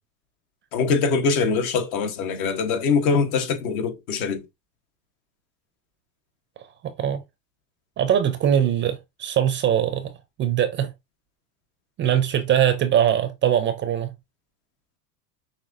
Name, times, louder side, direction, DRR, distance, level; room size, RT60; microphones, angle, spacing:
voice 1, 0.7-4.5, left 5 dB, 65° left, 1.1 m, -23 dB
voice 2, 6.8-7.2 8.0-10.1 10.4-10.9 12.0-14.1, right 10 dB, 25° right, 0.4 m, -22 dB
5.9 x 2.7 x 2.5 m
hypercardioid pair, 105°, 47 cm